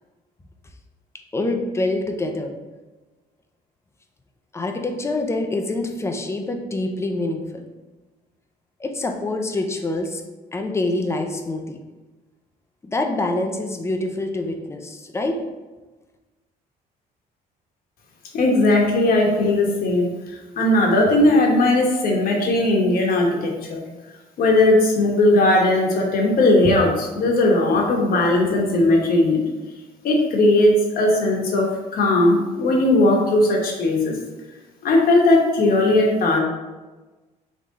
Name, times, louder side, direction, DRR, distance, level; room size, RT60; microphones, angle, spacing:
voice 1, 1.3-2.5 4.5-7.6 8.8-10.2 10.5-11.8 12.8-15.4, left 2 dB, 15° left, 4 dB, 0.5 m, -26 dB
voice 2, 18.3-23.8 24.4-29.5 30.0-34.2 34.8-36.4, left 2 dB, 60° left, 0 dB, 1.1 m, -18 dB
3.7 x 3.1 x 3.9 m, 1.2 s
cardioid pair, 110°, 17 cm